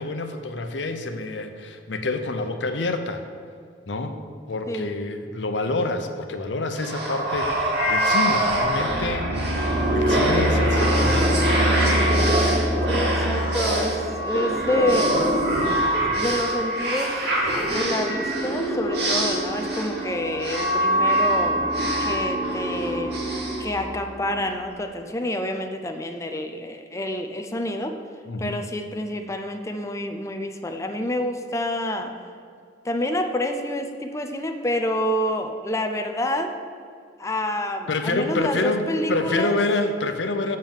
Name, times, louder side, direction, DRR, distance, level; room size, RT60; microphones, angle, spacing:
voice 1, 0.0-3.2 3.9-4.1 4.5-9.3 9.7-11.6 28.3-28.6 37.9-40.6, left 2 dB, 85° left, 7 dB, 0.7 m, -27 dB
sound 1, 6.7-24.4, right 1 dB, 65° right, 2.4 m, -23 dB
voice 2, 12.9-15.2 16.2-17.2 17.7-21.7 22.0-28.0 28.4-32.1 32.8-36.5 37.2-39.6, left 1 dB, 15° left, 5 dB, 0.6 m, -28 dB
7.5 x 6.4 x 7.3 m, 2.2 s
head